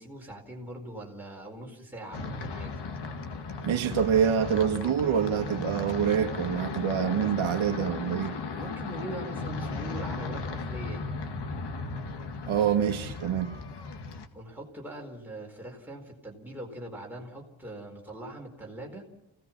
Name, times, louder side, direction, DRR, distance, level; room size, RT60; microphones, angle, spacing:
voice 1, 0.0-2.7 8.5-11.0 14.3-19.0, right 1 dB, 5° right, 4.5 m, -42 dB
sound 1, 2.1-14.3, left 4 dB, 55° left, 1.8 m, -36 dB
voice 2, 3.6-8.3 12.5-13.5, right 8 dB, 90° right, 1.6 m, -26 dB
29.5 x 17.5 x 5.9 m
wide cardioid pair, 165°, 47 cm